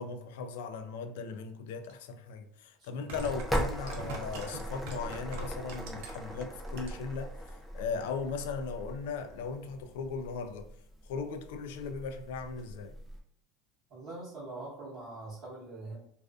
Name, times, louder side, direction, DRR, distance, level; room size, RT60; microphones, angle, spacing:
voice 1, 0.0-7.3 7.7-10.7 11.1-13.0, left 5 dB, 85° left, 0.3 m, -38 dB
sound 1, 1.9-2.0 2.9-6.3 6.7-7.2 7.5-7.6, right 3 dB, 80° right, 0.6 m, -43 dB
voice 2, 2.8-3.3 13.9-16.0, right 2 dB, 45° right, 0.9 m, -43 dB
sound 2, 3.2-13.2, equal, ahead, 0.4 m, -39 dB
2.4 x 2.3 x 2.3 m
supercardioid pair, 155°, 0 cm